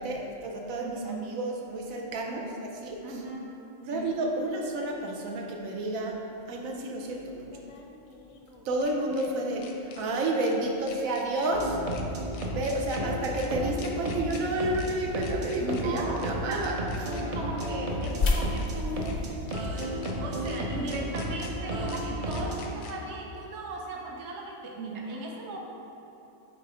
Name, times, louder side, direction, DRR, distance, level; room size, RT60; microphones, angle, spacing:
voice 1, 0.0-3.2 3.8-6.2 6.5-7.5 8.6-11.8 12.5-16.8, right 2 dB, 85° right, 0 dB, 1.0 m, -30 dB
voice 2, 0.8-1.2 2.3-2.4 3.0-3.5 3.9-4.2 15.6-16.7 17.3-19.2 19.8-25.6, right 2 dB, 60° right, -1 dB, 1.0 m, -37 dB
sound 1, 5.0-5.1 7.4-9.3 9.6-10.0 10.4-10.5 10.9-11.5 11.9-12.0 12.3-13.0 13.4-13.5 13.8-14.4 14.7-14.9 15.2-15.8 16.2-16.3 16.6-17.2 17.6-17.7 18.0-18.7 19.0-19.2 19.5-20.1 20.4-20.6 20.9-21.5 21.9-22.0 22.3-22.9, left 6 dB, 85° left, 1.0 m, -47 dB
sound 2, 11.5-22.8, equal, 40° right, 0.5 m, -33 dB
sound 3, 14.6-20.0, left 3 dB, 65° left, 0.4 m, -34 dB
5.5 x 3.8 x 4.8 m, 2.8 s
omnidirectional pair, 1.4 m